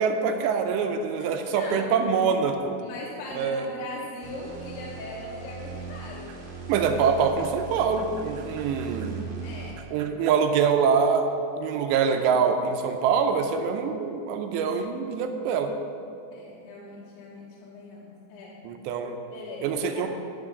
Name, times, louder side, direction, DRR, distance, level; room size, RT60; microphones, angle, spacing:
voice 1, 0.0-2.8 3.4-3.6 6.7-9.2 9.9-11.3 11.6-15.7 18.6-19.2 19.6-20.1, right 6 dB, 80° right, 6 dB, 2.7 m, -24 dB
voice 2, 1.2-1.9 2.8-6.4 9.4-9.9 16.3-18.6 19.3-20.1, left 2 dB, 80° left, -5 dB, 3.4 m, -40 dB
sound 1, 4.2-10.0, right 5 dB, 60° right, 2.3 m, -39 dB
11.0 x 6.0 x 6.5 m, 2.6 s
omnidirectional pair, 5.2 m